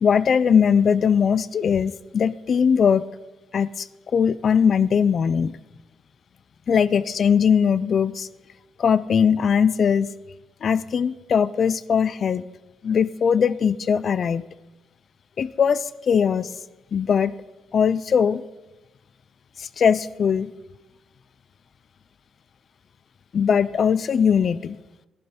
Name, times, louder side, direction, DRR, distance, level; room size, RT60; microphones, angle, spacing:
voice 1, 0.0-3.0 3.5-3.9 4.1-5.6 6.7-8.3 8.8-10.1 10.6-12.4 12.8-14.4 15.4-16.5 16.9-17.3 17.7-18.4 19.6-20.5 23.3-24.8, left 7 dB, 50° left, 16 dB, 0.4 m, -20 dB
11.5 x 11.5 x 4.4 m, 1.0 s
cardioid pair, 90°, 0 cm